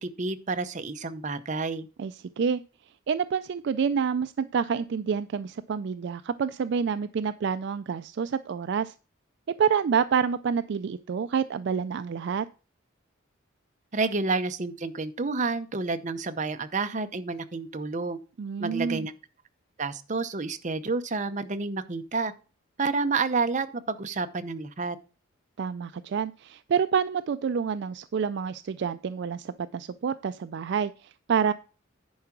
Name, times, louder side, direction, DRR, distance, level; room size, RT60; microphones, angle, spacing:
voice 1, 0.0-1.9 13.9-18.2 18.6-19.1 19.8-22.3 22.8-25.0, right 3 dB, 35° right, 9 dB, 0.7 m, -29 dB
voice 2, 2.0-2.6 3.1-8.9 9.6-12.5 18.4-19.1 25.6-31.5, right 6 dB, 55° right, 13 dB, 0.3 m, -28 dB
10.5 x 4.7 x 5.9 m, 0.35 s
head